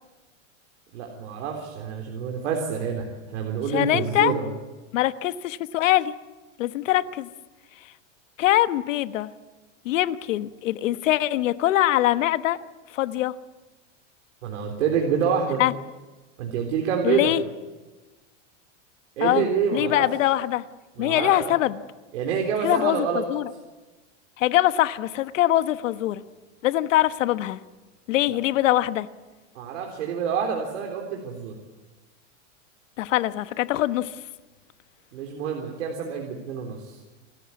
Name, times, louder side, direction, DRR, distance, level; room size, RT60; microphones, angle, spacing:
voice 1, 0.9-3.1 3.3-4.5 14.4-15.6 16.4-17.3 19.2-20.1 21.0-21.5 22.1-23.2 29.6-31.6 35.1-37.0, right 6 dB, 80° right, 1 dB, 3.9 m, -27 dB
voice 2, 3.7-4.3 4.9-6.1 6.6-7.3 8.4-9.3 9.8-12.6 12.9-13.3 15.6-15.7 17.0-17.4 19.2-19.4 19.7-20.6 21.0-21.8 22.6-23.5 24.4-26.2 26.6-27.6 28.1-29.1 33.0-34.1, left 14 dB, 85° left, 12 dB, 1.2 m, -23 dB
29.0 x 13.5 x 9.6 m, 1.2 s
supercardioid pair, 160°, 37 cm